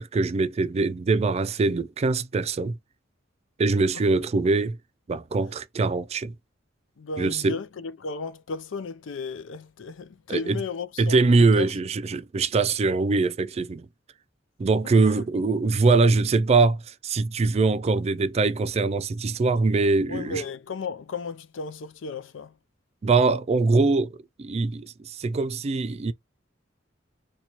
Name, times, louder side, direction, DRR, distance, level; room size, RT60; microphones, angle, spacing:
voice 1, 0.0-2.8 3.6-4.8 5.1-6.3 7.2-7.5 10.3-10.6 11.0-13.9 14.6-20.4 23.0-26.1, right 3 dB, 35° right, 0.3 m, -23 dB
voice 2, 7.0-11.7 14.8-15.2 20.1-22.6, left 4 dB, 80° left, 0.5 m, -35 dB
4.2 x 2.3 x 2.9 m
head